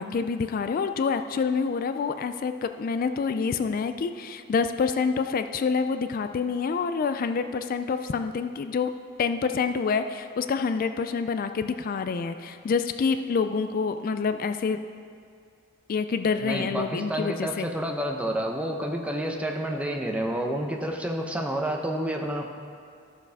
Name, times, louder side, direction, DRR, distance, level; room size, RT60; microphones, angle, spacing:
voice 1, 0.0-8.9 9.2-14.8 15.9-17.7, left 5 dB, 45° left, 9 dB, 0.3 m, -27 dB
voice 2, 16.4-22.5, right 1 dB, 5° right, 1 dB, 0.7 m, -29 dB
13.0 x 6.9 x 3.5 m, 2.4 s
head